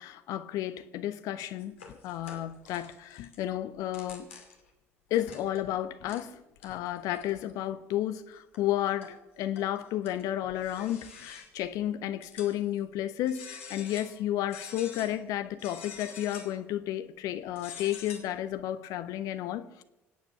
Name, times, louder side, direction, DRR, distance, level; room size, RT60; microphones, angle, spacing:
voice 1, 0.0-4.3 5.1-6.3 6.6-19.8, left 12 dB, 55° left, 1.0 m, -32 dB
sound 1, 1.6-3.4 3.8-4.7 5.1-5.7 6.1-6.2 6.6-7.5 8.1-8.2 8.5-9.2 9.5-11.7 12.2-12.8 13.3-14.2 14.5-15.1 15.6-16.6 17.5-18.2, left 6 dB, 75° left, 2.5 m, -46 dB
25.0 x 8.9 x 5.7 m
figure-of-eight pair, 55°, 7 cm